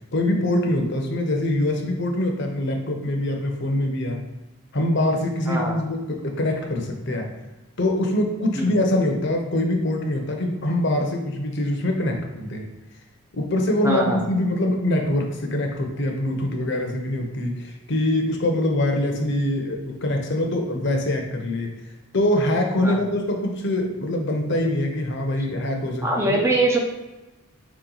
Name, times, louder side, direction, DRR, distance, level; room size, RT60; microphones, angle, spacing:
voice 1, 0.1-4.2 4.7-7.3 7.8-12.7 13.3-21.7 22.1-26.5, left 1 dB, 55° left, 3 dB, 0.7 m, -24 dB
voice 2, 5.5-5.8 8.5-8.7 13.8-14.2 22.8-23.0 26.0-26.8, right 2 dB, 15° right, 0 dB, 0.4 m, -22 dB
4.3 x 2.9 x 3.9 m, 1.1 s
head